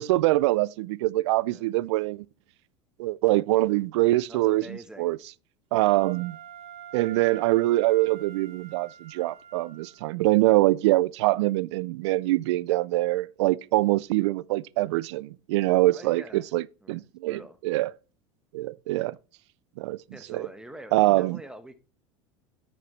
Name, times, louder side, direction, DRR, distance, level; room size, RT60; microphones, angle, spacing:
voice 1, 0.0-2.3 3.0-5.2 5.7-6.4 6.9-17.9 18.5-19.2 19.8-20.0 20.3-20.5 20.9-21.4, right 18 dB, 70° right, 0.4 m, -24 dB
voice 2, 4.3-5.1 15.8-16.5 16.8-17.6 20.1-21.8, equal, 5° right, 1.1 m, -45 dB
Wind instrument woodwind instrument, 5.7-10.0, right 9 dB, 40° right, 1.8 m, -46 dB
8.5 x 6.6 x 3.1 m
hypercardioid pair, 90°, 15 cm